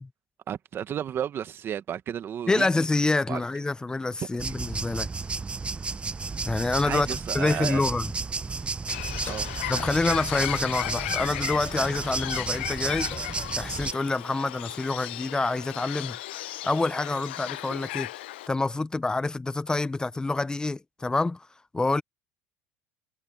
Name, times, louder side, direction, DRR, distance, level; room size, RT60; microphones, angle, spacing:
voice 1, 0.5-2.7 3.3-3.4 4.2-4.6 6.8-7.8 9.3-9.5, right 9 dB, 45° right, 1.6 m, -33 dB
voice 2, 2.5-5.1 6.4-7.1 7.3-8.1 9.7-13.1 13.5-16.2 16.6-18.1 18.5-21.5 21.7-22.0, left 3 dB, 15° left, 0.7 m, -27 dB
sound 1, 4.4-13.9, right 4 dB, 20° right, 0.9 m, -32 dB
Bird, 8.9-18.5, left 16 dB, 90° left, 0.4 m, -35 dB
sound 2, 9.3-9.6 10.8-11.1 12.8-13.4, left 8 dB, 40° left, 1.1 m, -44 dB
supercardioid pair, 90°, 6 cm